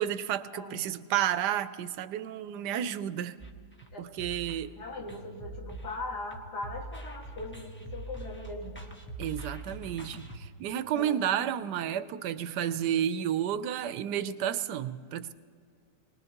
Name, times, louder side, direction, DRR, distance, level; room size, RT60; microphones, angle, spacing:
voice 1, 0.0-3.4 4.0-4.7 9.2-15.3, right 10 dB, 85° right, 13 dB, 1.2 m, -31 dB
voice 2, 0.5-0.8 3.9-4.0 4.8-8.8 10.9-11.5, left 2 dB, 75° left, 0 dB, 2.4 m, -40 dB
sound 1, 3.4-10.4, right 2 dB, 10° left, 0.9 m, -43 dB
23.5 x 19.5 x 2.9 m, 2.2 s
omnidirectional pair, 1.7 m